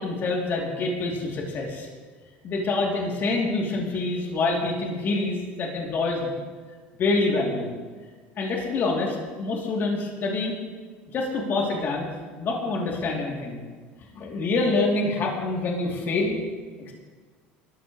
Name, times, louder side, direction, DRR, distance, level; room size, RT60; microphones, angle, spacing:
voice 1, 0.0-1.9 2.4-6.3 7.0-7.7 8.4-10.5 11.1-12.1 12.4-13.6 14.1-16.4 16.9-17.0, left 3 dB, 45° left, -2 dB, 3.3 m, -26 dB
20.5 x 13.5 x 3.3 m, 1.5 s
supercardioid pair, 105°, 5 cm